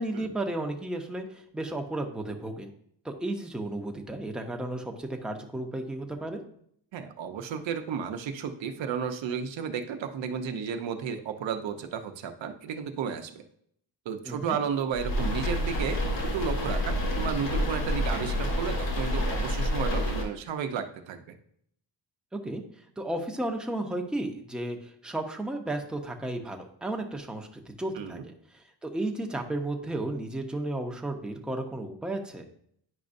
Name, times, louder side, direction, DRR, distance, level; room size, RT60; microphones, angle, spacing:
voice 1, 0.0-2.7 3.0-6.4 14.2-14.6 22.4-22.6 23.0-28.2 28.5-32.4, right 1 dB, ahead, 3 dB, 0.6 m, -33 dB
voice 2, 6.9-13.4 14.1-21.3 28.0-28.2, right 7 dB, 90° right, 7 dB, 0.7 m, -33 dB
sound 1, 14.9-20.2, left 1 dB, 80° left, 1.9 m, -28 dB
9.7 x 5.2 x 2.6 m, 0.67 s
wide cardioid pair, 140°, 44 cm